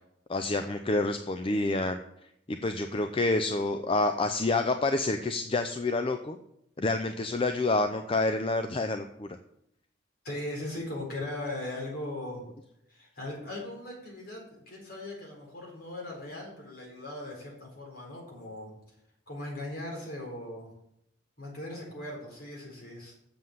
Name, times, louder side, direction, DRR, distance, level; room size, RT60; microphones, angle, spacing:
voice 1, 0.3-2.0 2.5-6.4 6.8-9.3, left 2 dB, 30° left, 7 dB, 0.5 m, -28 dB
voice 2, 10.2-12.5 12.9-18.7 19.3-20.7 21.4-23.1, left 1 dB, 55° left, -1 dB, 4.4 m, -39 dB
7.6 x 6.9 x 7.8 m, 0.77 s
head